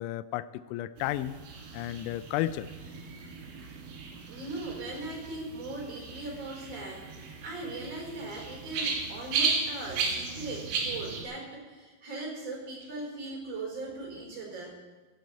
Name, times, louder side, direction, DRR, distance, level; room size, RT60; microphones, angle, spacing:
voice 1, 0.0-1.4 1.7-2.7, left 14 dB, 85° left, 14 dB, 2.8 m, -33 dB
sound 1, 1.0-11.2, right 4 dB, 65° right, 4.4 m, -35 dB
voice 2, 4.3-14.8, right 2 dB, 35° right, -1 dB, 5.1 m, -39 dB
16.5 x 12.5 x 4.5 m, 1.3 s
omnidirectional pair, 5.7 m